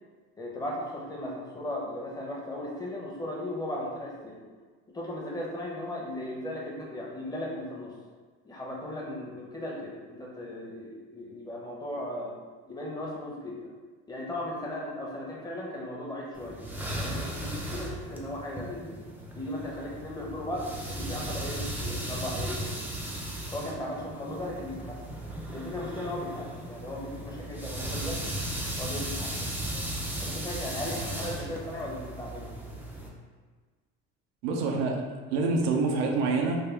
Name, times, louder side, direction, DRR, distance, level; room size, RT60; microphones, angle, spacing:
voice 1, 0.4-4.4 4.9-7.9 8.4-12.4 12.7-13.7 14.1-16.6 17.0-18.9 19.3-22.7 23.5-25.0 25.5-28.4 28.8-29.7 30.2-32.5, left 1 dB, 10° left, -3 dB, 0.8 m, -37 dB
sound 1, 16.4-33.1, right 1 dB, 5° right, 0.5 m, -36 dB
voice 2, 34.4-35.0 35.3-36.6, right 3 dB, 85° right, 1 dB, 0.6 m, -26 dB
3.4 x 2.2 x 3.2 m, 1.4 s
supercardioid pair, 100°, 32 cm